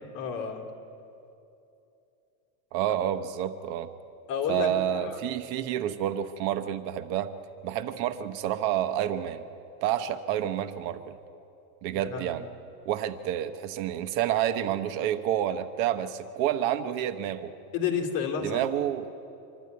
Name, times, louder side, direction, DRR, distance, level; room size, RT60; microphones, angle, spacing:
voice 1, 0.1-0.6 4.3-5.2 11.9-12.4 17.7-18.6, left 6 dB, 45° left, 2 dB, 2.7 m, -30 dB
voice 2, 2.7-3.9 4.5-7.3 7.6-9.4 9.8-11.2 11.8-12.4 12.8-17.5 18.4-19.1, right 11 dB, 60° right, 10 dB, 1.1 m, -29 dB
26.0 x 12.0 x 9.5 m, 2.8 s
supercardioid pair, 140°, 46 cm